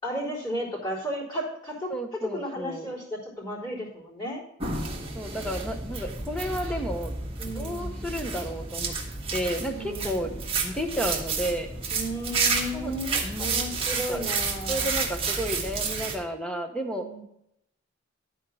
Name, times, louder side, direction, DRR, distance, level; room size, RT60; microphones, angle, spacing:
voice 1, 0.0-1.9 2.3-4.4 7.4-8.1 9.7-10.3 11.9-14.9 16.9-17.2, equal, 25° left, -9 dB, 3.7 m, -34 dB
voice 2, 1.9-3.0 5.1-7.1 7.5-8.9 9.3-10.3 10.6-11.7 12.7-12.9 13.2-13.7 14.1-14.2 14.7-17.1, equal, 5° left, 4 dB, 1.0 m, -32 dB
sound 1, 4.6-16.2, right 4 dB, 30° right, 1.6 m, -31 dB
12.5 x 4.6 x 6.4 m, 0.79 s
head